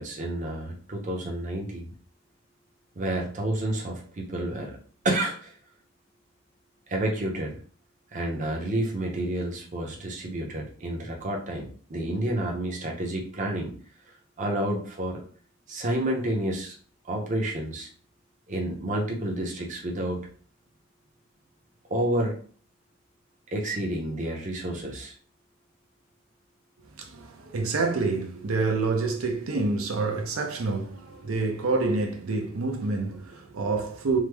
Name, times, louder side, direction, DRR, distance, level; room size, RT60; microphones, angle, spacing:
voice 1, 0.0-1.8 3.0-4.8 5.0-5.5 6.9-7.6 8.1-13.7 14.4-15.2 15.7-16.7 17.1-17.9 18.5-20.2 21.9-22.4 23.5-25.1, right 1 dB, 35° right, 0.6 m, -29 dB
voice 2, 27.0-34.2, right 3 dB, 80° right, 0.5 m, -27 dB
3.2 x 2.0 x 3.3 m
head